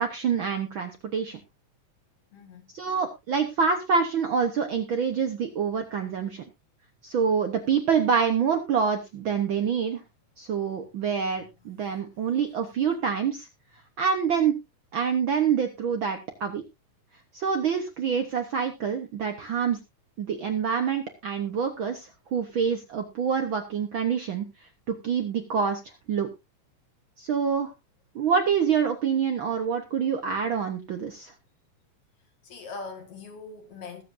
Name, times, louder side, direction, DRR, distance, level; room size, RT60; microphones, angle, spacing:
voice 1, 0.0-1.4 2.7-6.4 7.0-10.0 10.4-13.5 14.0-14.6 14.9-16.6 17.3-19.8 20.2-24.5 24.9-25.8 26.1-26.3 27.2-27.7 28.1-31.3, right 6 dB, 60° right, 1.4 m, -26 dB
voice 2, 2.3-2.7 32.4-34.0, left 4 dB, 55° left, 2.7 m, -41 dB
20.5 x 7.5 x 2.6 m
omnidirectional pair, 3.4 m